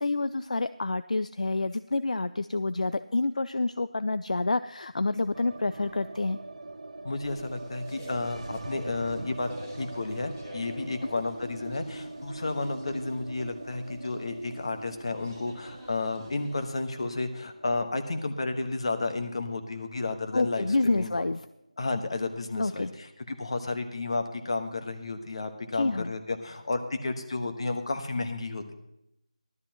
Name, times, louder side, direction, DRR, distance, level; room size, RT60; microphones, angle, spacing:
voice 1, 0.0-6.4 20.3-21.4 22.6-22.9 25.7-26.1, left 2 dB, 70° left, 13 dB, 0.4 m, -28 dB
sound 1, 5.3-21.4 21.7-21.8 22.1-22.8, right 2 dB, 65° right, 0.9 m, -43 dB
voice 2, 7.0-9.5 9.8-21.1 21.8-28.7, left 3 dB, 50° left, 7 dB, 1.4 m, -32 dB
sound 2, 7.2-16.7, equal, 10° left, 2.4 m, -48 dB
16.0 x 12.5 x 3.0 m, 0.83 s
figure-of-eight pair, 165°, 4 cm